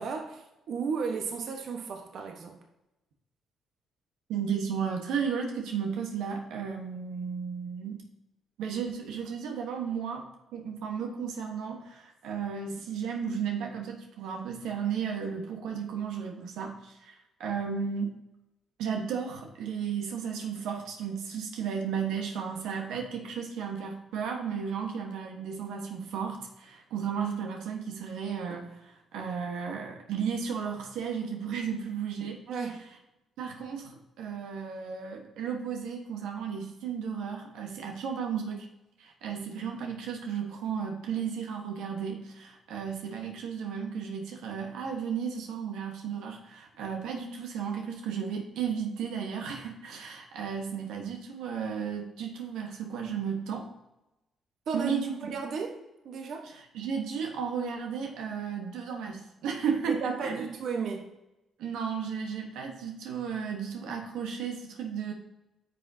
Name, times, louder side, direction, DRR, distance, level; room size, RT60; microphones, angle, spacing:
voice 1, 0.0-2.6 32.5-32.8 54.7-54.9 55.2-55.7 56.0-56.5 59.9-61.0, right 5 dB, 65° right, 3 dB, 1.1 m, -34 dB
voice 2, 4.3-8.0 8.6-10.2 10.5-17.1 17.4-18.2 18.8-32.7 33.4-38.7 39.0-53.7 54.7-55.3 56.4-60.5 61.6-65.1, right 6 dB, 90° right, 2 dB, 1.2 m, -34 dB
9.7 x 6.2 x 2.8 m, 0.94 s
cardioid pair, 90°, 0 cm